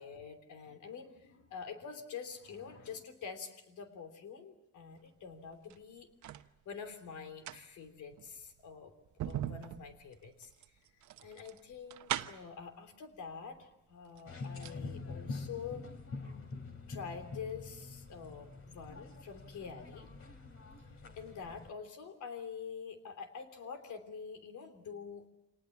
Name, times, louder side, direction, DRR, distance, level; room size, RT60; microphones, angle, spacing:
voice 1, 0.0-6.1 6.6-8.9 9.2-10.5 11.2-15.8 16.9-20.1 20.8-25.3, left 6 dB, 75° left, 7 dB, 3.3 m, -46 dB
sound 1, 5.5-6.5 7.2-12.6 13.6-13.7 14.0-14.8 15.1-15.2, right 11 dB, 70° right, 1.0 m, -41 dB
sound 2, 14.3-21.7, left 3 dB, 45° left, 3.3 m, -45 dB
26.0 x 19.0 x 8.6 m, 0.86 s
cardioid pair, 90°, 30 cm